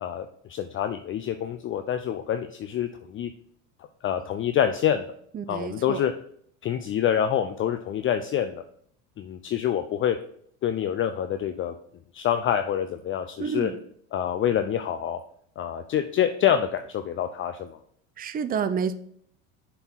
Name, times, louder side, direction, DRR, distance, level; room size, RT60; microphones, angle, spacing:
voice 1, 0.0-3.3 4.0-5.1 5.5-6.1 6.6-8.6 9.2-10.2 10.6-11.7 12.1-13.7 14.1-15.2 15.6-17.8, left 9 dB, 35° left, 8 dB, 0.5 m, -26 dB
voice 2, 5.3-6.0 13.4-13.8 18.2-18.9, right 6 dB, 25° right, 11 dB, 0.6 m, -29 dB
6.9 x 4.6 x 4.0 m, 0.64 s
supercardioid pair, 90°, 37 cm